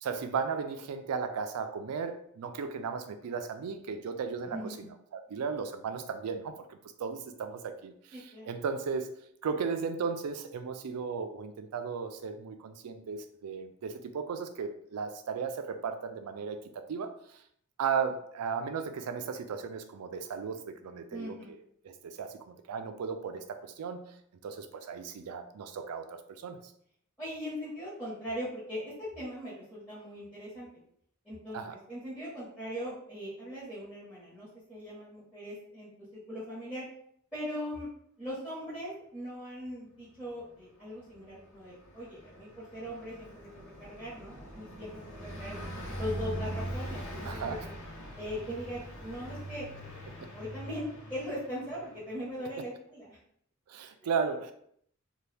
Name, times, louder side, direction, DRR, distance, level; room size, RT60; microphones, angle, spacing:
voice 1, 0.0-4.7 5.1-9.1 9.4-17.2 17.8-21.3 21.8-24.1 24.4-26.7 31.5-31.8 47.2-47.7 50.2-50.3 53.7-54.5, right 5 dB, 90° right, 8 dB, 0.4 m, -35 dB
voice 2, 4.4-4.9 8.1-8.5 21.1-21.5 27.2-30.7 31.2-31.6 31.9-36.8 37.3-37.9 38.2-43.5 43.8-45.6 45.9-47.7 48.1-49.7 50.3-53.2 54.0-54.1, equal, 5° left, -12 dB, 1.1 m, -40 dB
Car passing by, 41.1-52.2, equal, 60° left, 0.9 m, -42 dB
2.8 x 2.2 x 3.3 m, 0.67 s
head